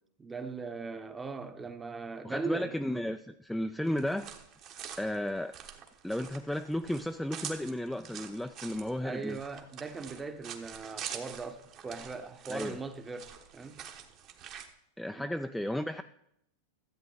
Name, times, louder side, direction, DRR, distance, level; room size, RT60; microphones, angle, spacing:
voice 1, 0.2-2.7 9.0-13.8 15.1-15.3, right 4 dB, 15° right, 0.9 m, -39 dB
voice 2, 2.2-4.3 5.0-5.6 6.0-9.4 12.5-12.8 15.0-16.0, left 1 dB, 5° left, 0.3 m, -34 dB
sound 1, 3.9-14.7, right 8 dB, 45° right, 1.2 m, -46 dB
13.0 x 8.0 x 4.0 m
hypercardioid pair, 115°, 0 cm